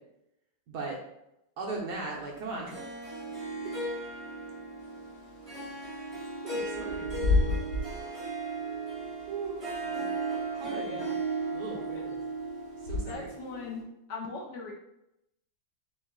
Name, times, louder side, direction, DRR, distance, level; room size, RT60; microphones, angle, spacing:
voice 1, 1.6-3.2 6.1-7.6 7.9-8.2 9.3-9.7 10.5-11.1 11.5-12.2 12.8-13.3, right 3 dB, 65° right, -2 dB, 1.2 m, -39 dB
Harp, 2.7-13.8, right 3 dB, 25° right, 0.8 m, -36 dB
Bird / Wind, 4.8-13.5, left 3 dB, 50° left, 1.6 m, -34 dB
voice 2, 10.7-11.1 13.0-13.8 14.1-14.7, left 4 dB, 70° left, 0 dB, 1.2 m, -40 dB
3.9 x 3.4 x 3.6 m, 0.85 s
omnidirectional pair, 2.2 m